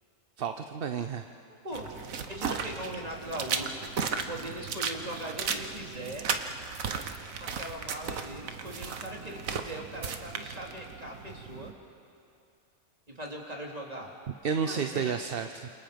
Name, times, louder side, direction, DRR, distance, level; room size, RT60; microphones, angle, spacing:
voice 1, 0.4-1.3 14.4-15.7, right 6 dB, 50° right, 7 dB, 0.8 m, -31 dB
sound 1, 1.7-11.7, right 6 dB, 80° right, 1.5 m, -36 dB
voice 2, 2.3-3.9 4.3-6.3 7.4-11.7 13.1-14.1 14.6-15.1, right 1 dB, 30° right, -1 dB, 3.1 m, -40 dB
29.0 x 28.0 x 5.2 m, 2.5 s
omnidirectional pair, 1.4 m